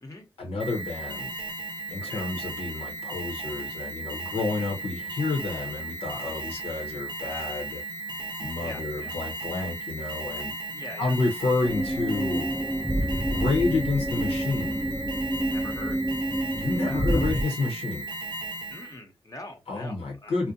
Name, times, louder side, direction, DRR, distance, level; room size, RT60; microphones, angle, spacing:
voice 1, 0.4-1.3 1.9-7.8 8.4-10.5 11.0-12.5 13.3-14.9 16.5-18.1 19.7-20.5, left 3 dB, 80° left, 0.8 m, -29 dB
Alarm, 0.6-19.0, right 2 dB, 50° right, 0.7 m, -36 dB
voice 2, 8.6-9.1 10.7-11.1 13.0-13.3 15.5-16.0 16.8-17.3 18.7-20.3, left 2 dB, 35° left, 0.8 m, -43 dB
sound 1, 11.6-17.4, right 1 dB, ahead, 0.4 m, -28 dB
2.6 x 2.1 x 2.6 m
cardioid pair, 55°, 10 cm